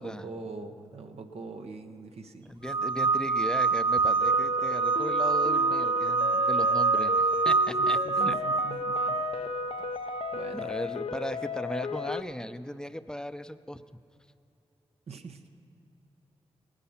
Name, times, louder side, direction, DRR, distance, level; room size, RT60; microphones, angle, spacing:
voice 1, 0.0-2.5 3.0-3.1 7.8-9.2 10.3-10.7 15.1-15.5, right 4 dB, 70° right, 5 dB, 1.0 m, -43 dB
voice 2, 2.5-8.4 10.5-13.8, left 1 dB, 5° left, 12 dB, 0.6 m, -37 dB
sound 1, 2.6-10.4, right 4 dB, 45° right, 0.6 m, -26 dB
sound 2, 4.2-12.2, left 5 dB, 65° left, 0.6 m, -35 dB
18.0 x 9.9 x 5.7 m, 2.8 s
cardioid pair, 50°, 11 cm